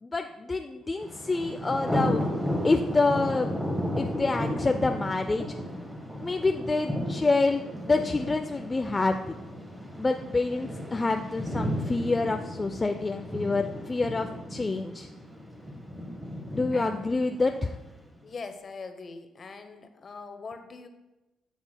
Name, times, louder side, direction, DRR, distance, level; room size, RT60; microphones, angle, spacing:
voice 1, 0.0-2.3 2.6-3.5 4.0-5.4 6.2-9.4 10.0-15.1 16.5-17.8, left 3 dB, 25° left, 6 dB, 0.4 m, -27 dB
Thunder, 1.0-18.0, equal, 10° right, 1.3 m, -34 dB
voice 2, 16.7-17.1 18.2-20.9, left 4 dB, 40° left, 8 dB, 0.8 m, -42 dB
12.0 x 6.0 x 2.2 m, 1.0 s
cardioid pair, 90°, 0 cm